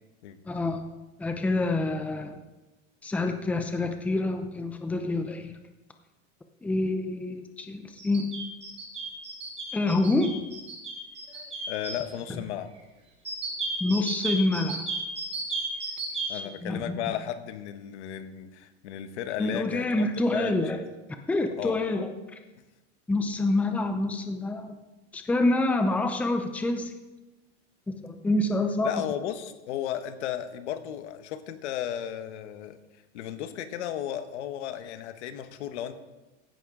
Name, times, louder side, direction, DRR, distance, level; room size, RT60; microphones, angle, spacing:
voice 1, 0.5-0.8 1.2-2.4 3.0-5.5 6.6-8.3 9.7-10.4 13.8-14.8 16.3-17.1 19.4-20.8 21.1-22.1 23.1-24.8 25.1-26.9 28.0-28.9, left 2 dB, 5° left, 6 dB, 0.6 m, -27 dB
sound 1, 8.0-11.9 13.2-16.3, right 3 dB, 20° right, 3.0 m, -33 dB
voice 2, 11.3-12.7 16.3-20.8 21.6-21.8 28.8-32.8 33.1-35.9, left 10 dB, 85° left, 10 dB, 1.2 m, -35 dB
15.5 x 10.5 x 3.8 m, 1.1 s
supercardioid pair, 155°, 34 cm